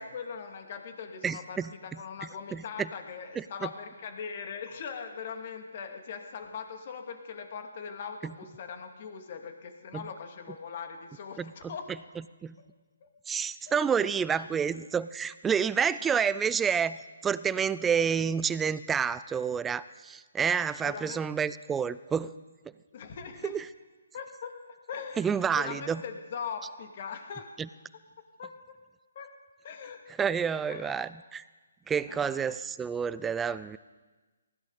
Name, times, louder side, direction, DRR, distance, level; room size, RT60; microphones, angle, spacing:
voice 1, 0.0-11.9 13.0-13.1 13.7-13.8 14.3-14.6 20.6-21.2 22.9-23.6 24.1-27.5 28.4-28.8 29.1-29.3 29.6-30.1 30.7-31.1 32.1-32.3, left 6 dB, 45° left, 4 dB, 2.4 m, -41 dB
voice 2, 1.2-1.7 2.5-2.9 3.4-3.7 9.9-10.0 11.4-11.7 12.4-12.6 13.3-17.0 17.2-22.3 23.5-23.6 25.2-26.0 27.6-27.7 30.2-31.4 31.9-33.8, right 7 dB, 10° right, 17 dB, 0.4 m, -29 dB
19.5 x 16.0 x 4.1 m, 1.3 s
hypercardioid pair, 150°, 0 cm